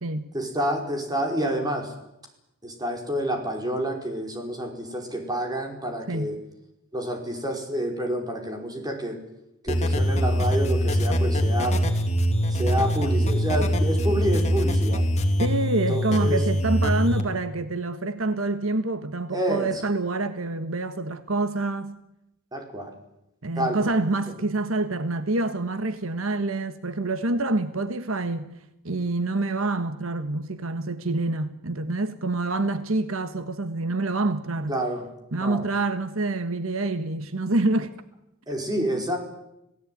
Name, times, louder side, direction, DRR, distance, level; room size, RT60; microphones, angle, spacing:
voice 1, 0.3-1.9 2.6-6.4 6.9-9.2 9.6-11.8 12.5-15.1 15.7-16.4 19.3-19.7 22.5-22.9 23.6-23.9 34.7-35.1 35.4-35.6 38.5-39.2, right 1 dB, 20° right, 5.2 m, -28 dB
sound 1, 9.7-17.2, equal, 35° left, 2.8 m, -23 dB
voice 2, 15.4-22.0 23.4-28.5 28.8-34.8 35.3-38.0, right 2 dB, 75° right, 1.4 m, -27 dB
27.0 x 17.5 x 9.4 m
head